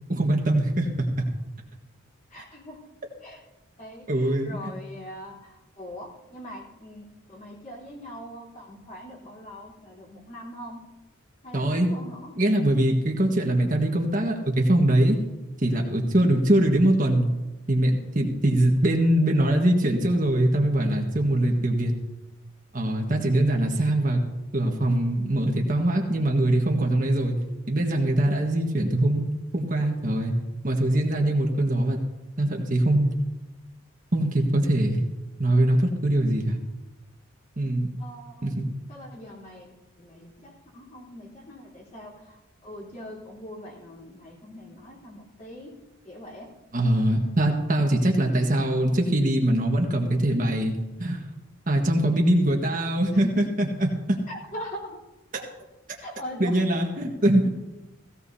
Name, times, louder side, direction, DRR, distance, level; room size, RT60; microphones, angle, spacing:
voice 1, 0.1-1.3 4.1-4.7 11.5-11.9 12.4-15.2 15.6-17.3 17.7-21.9 22.7-24.2 24.5-27.4 27.7-30.3 30.6-32.0 32.4-33.1 34.1-35.0 35.4-36.6 37.6-37.9 38.4-38.7 46.7-50.7 51.0-51.3 51.7-54.2 55.3-55.4 56.4-57.5, right 1 dB, 40° right, 1 dB, 1.5 m, -22 dB
voice 2, 2.3-2.9 3.2-3.4 3.8-10.8 11.4-12.3 38.0-38.5 38.9-39.7 40.0-42.4 42.6-45.8 46.0-46.5 54.3-55.0 56.0-56.6, equal, 35° left, -5 dB, 3.7 m, -42 dB
17.0 x 17.0 x 2.8 m, 1.0 s
head